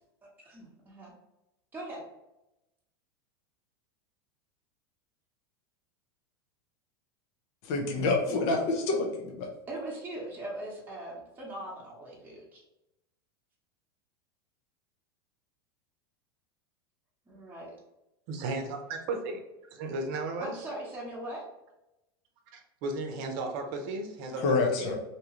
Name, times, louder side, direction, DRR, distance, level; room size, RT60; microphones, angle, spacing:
voice 1, 0.4-1.1 1.7-2.1 9.7-12.6 17.3-17.7 20.4-21.4, right 1 dB, 15° right, -5 dB, 0.9 m, -40 dB
voice 2, 7.6-9.5 24.4-25.0, left 3 dB, 55° left, 1 dB, 0.6 m, -27 dB
voice 3, 18.3-19.4 19.7-20.5 22.5-25.0, right 3 dB, 60° right, 4 dB, 0.7 m, -35 dB
2.7 x 2.3 x 3.0 m, 0.93 s
hypercardioid pair, 95°, 13 cm